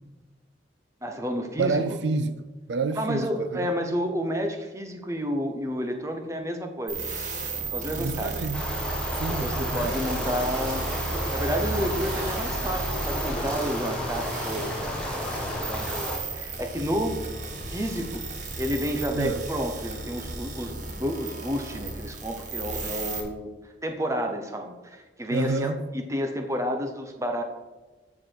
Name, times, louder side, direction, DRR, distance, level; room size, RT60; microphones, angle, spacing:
voice 1, 1.0-1.8 3.0-7.0 7.7-8.3 9.3-10.8 11.3-17.2 17.7-18.2 18.6-23.5 23.8-27.4, equal, 15° right, 0.9 m, -30 dB
voice 2, 1.6-3.7 8.0-8.7 9.1-9.9 19.1-19.4 25.3-25.8, right 4 dB, 70° right, 0.5 m, -29 dB
sound 1, 6.9-23.2, right 3 dB, 40° right, 1.4 m, -34 dB
sound 2, 8.5-16.2, equal, 5° left, 1.6 m, -32 dB
14.0 x 4.8 x 4.7 m
head